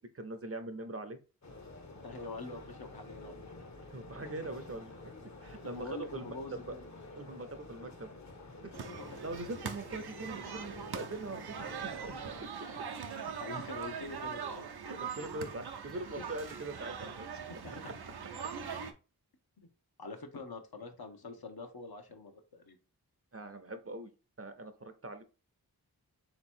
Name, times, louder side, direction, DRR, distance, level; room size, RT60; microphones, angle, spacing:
voice 1, 0.1-1.2 3.9-5.1 5.4-6.7 7.2-8.1 8.6-8.9 9.2-11.4 11.8-12.1 14.8-17.3 23.3-24.1 24.4-25.2, right 2 dB, 35° right, 9 dB, 0.6 m, -42 dB
sound 1, 1.4-12.5, left 2 dB, 45° left, 0.9 m, -50 dB
voice 2, 2.0-3.5 5.4-6.9 8.7-9.3 12.6-12.8 13.1-14.6 16.2-16.3 17.3-17.9 19.6-19.7 20.0-22.8, left 3 dB, 70° left, 5 dB, 0.9 m, -45 dB
sound 2, 8.7-18.9, right 6 dB, 75° right, 0.7 m, -42 dB
3.4 x 3.0 x 4.3 m, 0.33 s
wide cardioid pair, 50°, 39 cm